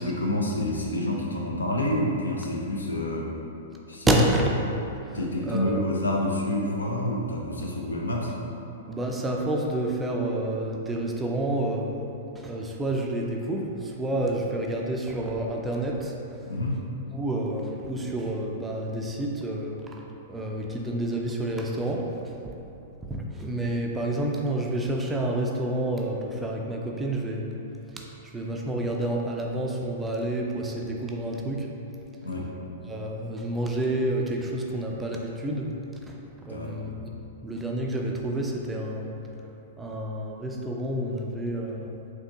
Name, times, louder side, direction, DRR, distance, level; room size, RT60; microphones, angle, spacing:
voice 1, 0.0-3.3 3.9-4.1 5.1-8.3 16.5-16.8 32.2-32.5 36.5-36.7, left 1 dB, 75° left, -1 dB, 0.5 m, -28 dB
voice 2, 4.1-4.4 5.1-5.2 5.5-5.8 8.9-11.9 12.4-16.1 17.1-20.0 20.3-22.5 23.0-27.5 27.9-31.7 32.9-35.7 36.0-37.1 37.4-39.1 39.8-41.9, right 1 dB, 10° right, 0 dB, 0.4 m, -29 dB
4.2 x 2.9 x 2.7 m, 2.9 s
figure-of-eight pair, 105°, 0 cm